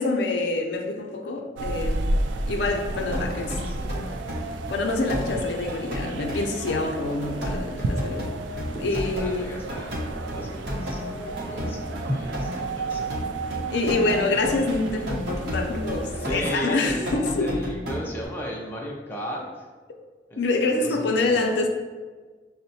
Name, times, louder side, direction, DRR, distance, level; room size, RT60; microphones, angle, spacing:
voice 1, 0.0-2.0 2.5-3.6 4.7-8.3 8.8-9.5 13.7-17.6 20.4-21.7, left 3 dB, 75° left, 3 dB, 0.4 m, -26 dB
sound 1, 1.6-16.6, right 2 dB, 90° right, 0.3 m, -32 dB
voice 2, 2.9-4.2 8.7-9.9 10.3-13.3 16.1-19.7 20.3-21.4, equal, 10° left, -3 dB, 0.5 m, -36 dB
sound 2, 3.1-9.3 9.7-18.2, equal, 65° right, 0.7 m, -33 dB
Drum, 8.0-9.5 12.1-14.2, equal, 35° right, 1.1 m, -36 dB
6.1 x 2.1 x 2.7 m, 1.4 s
head